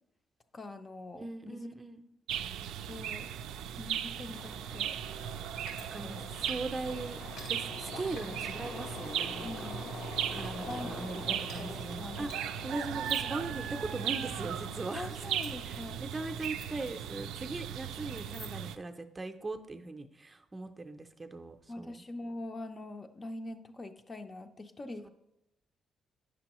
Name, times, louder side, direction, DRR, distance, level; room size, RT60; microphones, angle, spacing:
voice 1, 0.5-1.7 2.9-3.3 3.8-5.0 5.9-6.3 8.0-8.5 9.4-9.9 10.7-11.0 11.2-12.4 14.9-16.0 21.7-25.1, left 2 dB, 30° left, 7 dB, 0.5 m, -44 dB
voice 2, 1.1-2.0 5.9-7.2 7.5-9.7 10.3-15.1 15.7-22.0 25.0-25.1, right 2 dB, 25° right, 6 dB, 0.5 m, -40 dB
sound 1, 2.3-18.8, right 9 dB, 85° right, 0.3 m, -37 dB
sound 2, 4.3-16.4 17.2-17.4 17.9-18.0, left 4 dB, 75° left, 0.8 m, -47 dB
sound 3, 5.7-6.9 7.4-7.5 8.2-8.8 9.2-10.1 10.4-10.8 11.5-11.6 12.3-12.4 13.0-13.3 13.8-14.0 15.2-17.3 17.6-17.8 18.1-18.8, left 2 dB, 90° left, 1.6 m, -51 dB
8.5 x 6.1 x 3.0 m, 0.89 s
cardioid pair, 90°, 0 cm